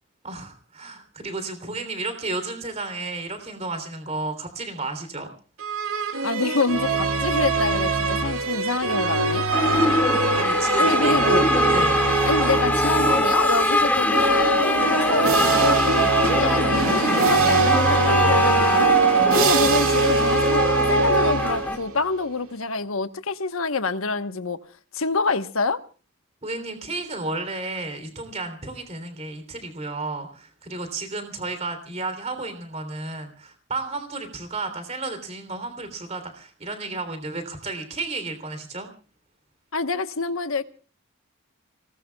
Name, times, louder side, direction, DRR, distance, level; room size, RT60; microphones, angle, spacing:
voice 1, 0.2-5.3 10.3-11.1 11.7-12.0 26.4-38.9, right 3 dB, 30° right, 3.3 m, -32 dB
sound 1, 5.6-13.5 14.0-22.0, right 4 dB, 80° right, 2.0 m, -22 dB
voice 2, 6.2-9.5 10.8-11.5 12.2-19.0 19.3-20.6 20.9-24.6 24.9-25.8 39.7-40.6, left 4 dB, 75° left, 1.2 m, -26 dB
sound 2, 9.5-21.8, left 1 dB, 10° left, 1.9 m, -23 dB
29.5 x 19.5 x 2.3 m
head